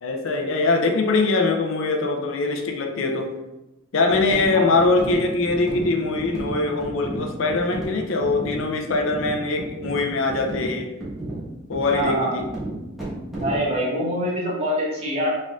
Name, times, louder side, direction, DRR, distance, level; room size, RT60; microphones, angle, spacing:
voice 1, 0.0-3.3 3.9-10.9 11.7-12.4, left 3 dB, 70° left, 3 dB, 0.5 m, -22 dB
sound 1, 4.1-13.7, right 1 dB, ahead, 1.3 m, -33 dB
voice 2, 11.9-12.4 13.4-15.3, equal, 30° right, -5 dB, 1.2 m, -24 dB
4.2 x 3.7 x 2.4 m, 1.0 s
head